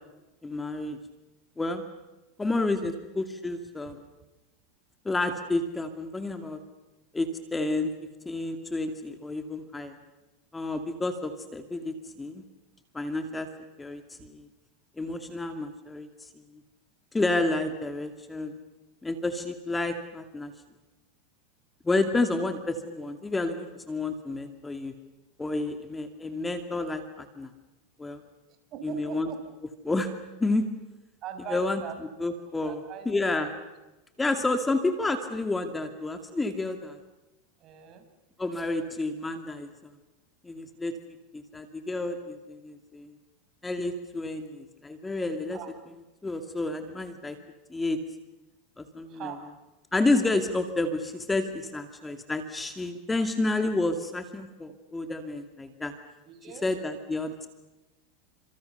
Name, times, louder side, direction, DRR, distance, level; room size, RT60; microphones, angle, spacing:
voice 1, 0.4-1.0 1.6-1.8 2.4-4.0 5.0-6.6 7.1-7.9 8.3-10.0 10.5-12.4 12.9-13.5 13.8-14.5 15.0-16.3 17.1-18.6 19.0-20.5 21.8-24.9 25.4-27.5 28.0-28.2 28.8-29.3 29.8-30.1 30.4-30.7 31.5-31.8 32.2-32.8 33.1-33.5 34.2-37.0 38.4-39.9 40.4-40.9 41.3-43.1 43.6-45.6 46.2-47.4 47.7-48.0 48.8-49.3 49.9-55.9 56.6-57.5, left 2 dB, 10° left, 7 dB, 2.3 m, -30 dB
voice 2, 28.7-29.4 31.2-32.0 32.5-33.1 33.4-33.6 37.6-38.1 45.5-45.7 49.1-49.5 56.2-56.7, right 8 dB, 45° right, 7 dB, 5.4 m, -41 dB
30.0 x 27.0 x 6.9 m, 1.1 s
supercardioid pair, 115°, 0 cm